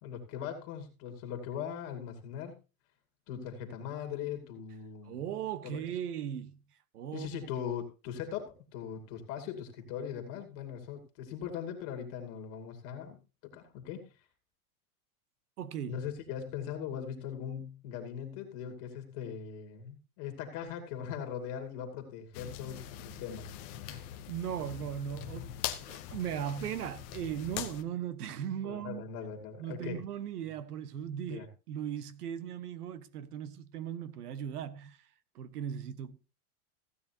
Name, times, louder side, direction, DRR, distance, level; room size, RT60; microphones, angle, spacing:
voice 1, 0.0-2.5 3.3-5.2 5.6-5.8 7.1-14.0 15.9-23.6 28.6-30.0 31.3-31.5, left 8 dB, 35° left, 2.3 m, -40 dB
voice 2, 5.0-6.6 6.9-7.4 15.6-16.0 23.9-29.0 29.6-35.0 35.3-36.2, right 9 dB, 80° right, 1.3 m, -38 dB
sound 1, 22.3-27.8, left 11 dB, 20° left, 0.5 m, -42 dB
15.5 x 9.3 x 2.8 m
supercardioid pair, 170°, 45 cm